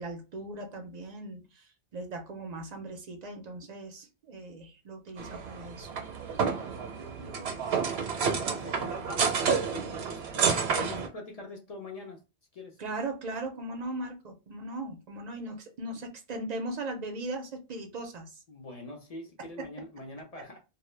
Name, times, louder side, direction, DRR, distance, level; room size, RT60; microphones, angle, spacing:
voice 1, 0.0-5.9 12.8-18.4, right 2 dB, 55° right, 0.5 m, -38 dB
sound 1, 5.2-11.1, right 6 dB, 80° right, 0.8 m, -30 dB
voice 2, 7.2-7.7 8.2-12.2 12.5-12.8 18.5-20.6, left 2 dB, 50° left, 0.5 m, -44 dB
2.1 x 2.1 x 3.1 m
omnidirectional pair, 1.1 m